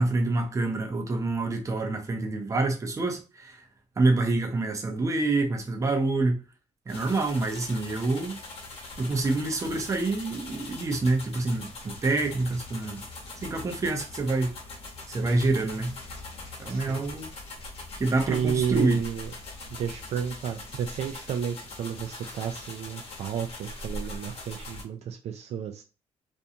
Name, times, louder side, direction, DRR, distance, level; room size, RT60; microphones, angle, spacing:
voice 1, 0.0-3.6 4.0-6.4 6.9-8.4 9.0-13.0 13.4-14.5 15.1-16.0 16.6-17.3 17.9-19.0, right 2 dB, 25° right, 0.7 m, -27 dB
sound 1, 6.9-24.8, left 2 dB, 55° left, 1.0 m, -41 dB
voice 2, 16.7-17.1 18.3-19.3 19.7-25.8, right 8 dB, 65° right, 0.4 m, -31 dB
2.5 x 2.2 x 2.7 m
cardioid pair, 115°, 12 cm